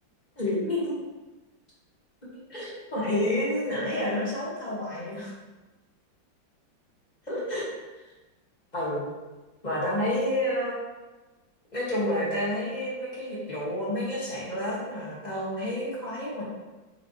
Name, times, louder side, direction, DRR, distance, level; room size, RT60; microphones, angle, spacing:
voice 1, 0.4-1.0 2.5-5.3 7.3-7.7 8.7-9.1 9.6-10.8 11.7-16.4, left 1 dB, 20° left, -8 dB, 2.1 m, -29 dB
7.7 x 5.0 x 3.2 m, 1.2 s
omnidirectional pair, 2.1 m